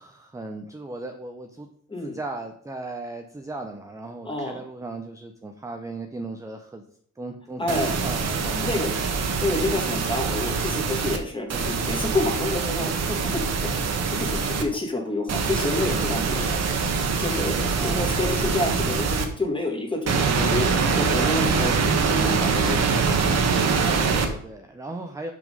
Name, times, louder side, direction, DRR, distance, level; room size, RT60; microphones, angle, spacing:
voice 1, 0.0-1.7 2.0-6.8 7.2-9.0 17.7-18.2 21.5-21.8 23.7-25.3, right 2 dB, 10° right, 5 dB, 0.6 m, -37 dB
voice 2, 4.2-4.6 7.6-8.0 8.6-8.9 9.4-13.7 14.2-16.5 16.8-22.8, left 2 dB, 15° left, 1 dB, 2.0 m, -28 dB
sound 1, 7.7-11.2 11.5-14.6 15.3-19.2 20.1-24.3, right 5 dB, 55° right, 1.3 m, -24 dB
6.2 x 5.9 x 5.2 m, 0.64 s
cardioid pair, 135°, 31 cm